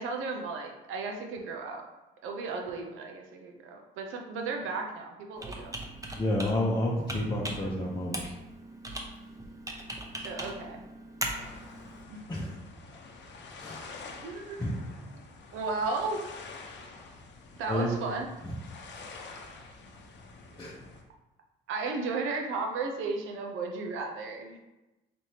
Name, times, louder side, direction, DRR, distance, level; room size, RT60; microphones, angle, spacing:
voice 1, 0.0-1.8 2.2-5.7 10.2-10.8 12.1-12.2 14.2-14.6 15.5-16.2 17.6-18.3 21.7-24.6, right 3 dB, 90° right, 2 dB, 0.6 m, -34 dB
Computer keyboard, 5.4-12.0, right 1 dB, 15° right, 0.7 m, -40 dB
voice 2, 6.2-8.2 12.3-12.6 13.6-13.8 14.6-14.8 17.7-18.0 18.4-18.6 20.6-20.7, left 1 dB, 20° left, -5 dB, 0.7 m, -30 dB
sound 1, 11.3-21.0, left 3 dB, 65° left, 0.7 m, -47 dB
4.2 x 3.3 x 2.8 m, 1.0 s
cardioid pair, 90°, 20 cm